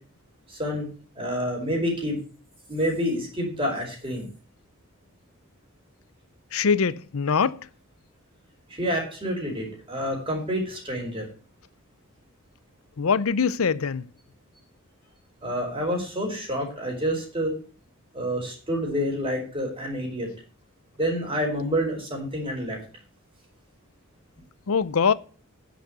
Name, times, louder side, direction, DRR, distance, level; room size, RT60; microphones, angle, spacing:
voice 1, 0.5-0.9 1.2-2.2 2.7-4.3 8.7-11.2 15.4-17.5 18.1-20.3 21.0-22.8, equal, 25° right, 4.8 m, -28 dB
voice 2, 6.5-7.6 13.0-14.0 24.7-25.1, left 6 dB, 80° left, 0.6 m, -23 dB
10.0 x 6.3 x 8.0 m
head